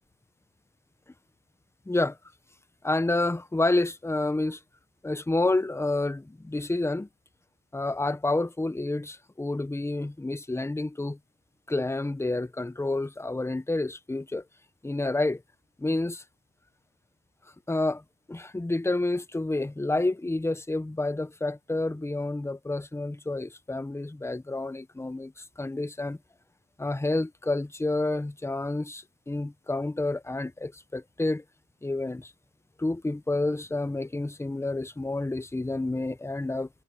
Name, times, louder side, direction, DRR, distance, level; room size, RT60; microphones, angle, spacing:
voice 1, 1.9-2.2 2.8-4.6 5.0-7.1 7.7-11.2 11.7-14.4 14.8-15.4 15.8-16.2 17.7-18.0 18.3-26.2 26.8-31.4 31.8-32.3 32.8-36.7, left 2 dB, 10° left, 0.9 m, -29 dB
cardioid pair, 90°, 30 cm